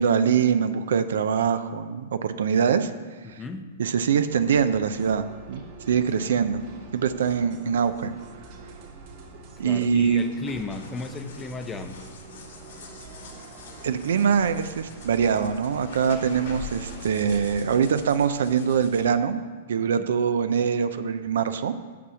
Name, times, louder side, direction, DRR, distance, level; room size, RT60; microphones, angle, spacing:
voice 1, 0.0-2.9 3.3-3.4 3.8-5.6 5.9-6.6 6.9-8.1 9.6-10.3 13.8-19.4 19.7-21.7, right 7 dB, 80° right, 11 dB, 0.5 m, -23 dB
voice 2, 3.2-3.7 9.6-12.0 19.8-20.1, left 3 dB, 15° left, 7 dB, 0.7 m, -35 dB
sound 1, 4.3-17.8, right 3 dB, 55° right, 2.0 m, -45 dB
sound 2, 10.4-19.0, left 4 dB, 75° left, 1.8 m, -44 dB
6.3 x 5.9 x 6.9 m, 1.4 s
hypercardioid pair, 130°, 0 cm